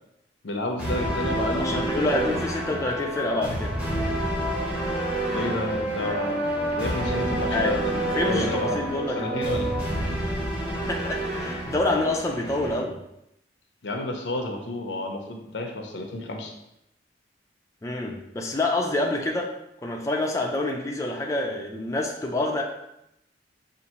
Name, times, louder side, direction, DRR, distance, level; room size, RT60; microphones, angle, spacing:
voice 1, 0.4-2.2 5.3-6.5 6.7-8.8 9.1-9.7 13.8-16.5, left 2 dB, 85° left, 3 dB, 0.7 m, -30 dB
sound 1, 0.8-12.8, right 1 dB, 5° right, 0.8 m, -28 dB
voice 2, 1.6-3.8 7.5-7.7 8.1-9.4 10.9-13.0 17.8-19.5 19.8-22.6, left 2 dB, 15° left, 0 dB, 0.4 m, -27 dB
5.3 x 2.5 x 2.9 m, 0.83 s
head